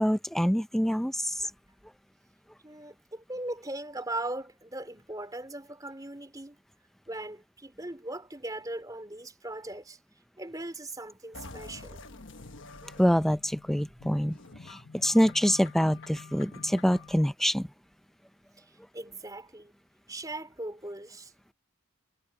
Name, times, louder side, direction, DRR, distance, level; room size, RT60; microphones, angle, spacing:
voice 1, 0.0-1.4 12.8-14.4 14.7-17.7, equal, ahead, 0.5 m, -26 dB
voice 2, 2.6-6.6 7.1-10.0 10.4-12.1 18.6-19.7 20.1-21.3, right 1 dB, 15° right, 4.0 m, -39 dB
sound 1, 11.3-17.1, left 3 dB, 60° left, 1.3 m, -47 dB
head